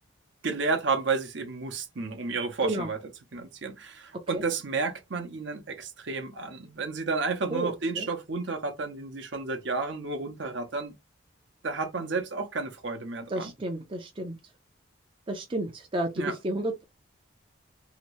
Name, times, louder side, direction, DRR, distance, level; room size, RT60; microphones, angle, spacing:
voice 1, 0.4-3.0 3.3-10.9 11.6-13.5 16.2-16.4, right 4 dB, 60° right, 0.7 m, -31 dB
voice 2, 7.5-8.1 13.3-14.3 15.3-16.7, right 1 dB, 25° right, 0.5 m, -31 dB
2.8 x 2.6 x 3.1 m
head